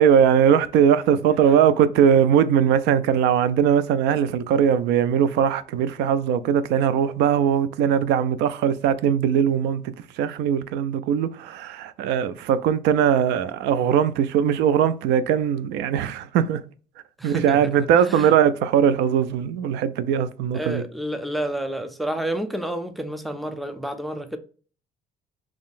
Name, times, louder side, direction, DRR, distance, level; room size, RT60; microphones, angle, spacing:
voice 1, 0.0-16.6 17.2-20.8, right 8 dB, 90° right, 0.4 m, -20 dB
voice 2, 17.2-17.6 18.0-18.3 20.5-24.4, right 1 dB, ahead, 0.4 m, -29 dB
3.8 x 3.0 x 2.4 m
cardioid pair, 110°, 17 cm